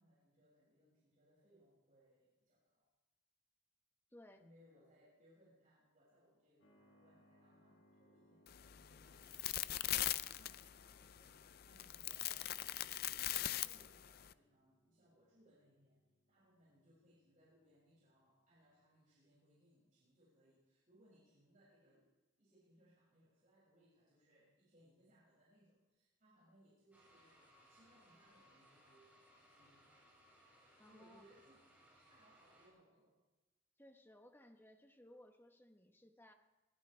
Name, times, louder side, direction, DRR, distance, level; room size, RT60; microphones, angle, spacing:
voice 1, 0.0-2.9 4.4-9.8 10.1-13.2 13.5-16.0 16.3-22.1 22.4-29.1 29.5-29.9 30.8-33.2, equal, 45° right, -8 dB, 6.1 m, -70 dB
voice 2, 4.1-4.5 30.8-31.2 33.8-36.3, left 1 dB, 10° left, 5 dB, 1.1 m, -61 dB
Keyboard (musical), 6.6-19.0, equal, 85° left, 6.4 m, -74 dB
sound 1, 8.5-14.3, left 13 dB, 55° left, 0.4 m, -41 dB
sound 2, 26.9-32.7, right 1 dB, 10° right, 6.0 m, -67 dB
21.0 x 17.0 x 3.3 m, 1.1 s
head